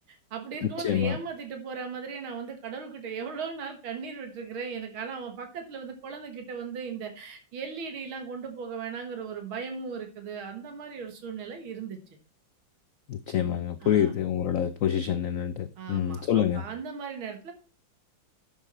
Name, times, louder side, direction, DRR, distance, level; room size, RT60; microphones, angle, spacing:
voice 1, 0.1-12.0 13.8-14.1 15.8-17.5, right 5 dB, 85° right, 2.3 m, -37 dB
voice 2, 0.6-1.2 13.1-16.6, left 9 dB, 90° left, 0.7 m, -27 dB
10.5 x 7.2 x 4.3 m
omnidirectional pair, 2.2 m